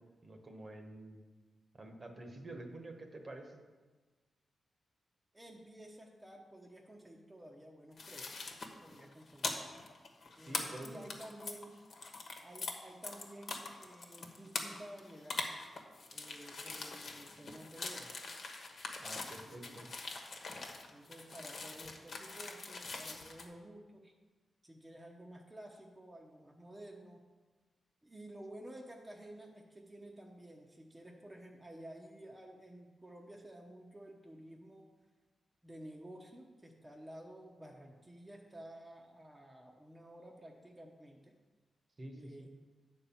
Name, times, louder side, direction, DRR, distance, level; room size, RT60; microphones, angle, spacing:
voice 1, 0.2-1.2 1.8-3.6 10.4-11.0 19.0-19.8 42.0-42.5, right 1 dB, 35° right, 4 dB, 1.2 m, -48 dB
voice 2, 5.3-8.5 8.8-9.8 10.4-11.8 12.4-15.5 16.1-18.1 19.4-19.9 20.9-24.1 24.6-27.2 28.0-34.9 35.6-41.4 42.1-42.5, right 1 dB, 15° right, -1 dB, 0.9 m, -52 dB
sound 1, 8.0-12.7 13.0-23.4, left 3 dB, 60° left, 1.3 m, -43 dB
9.3 x 4.3 x 7.0 m, 1.3 s
cardioid pair, 95°, 0 cm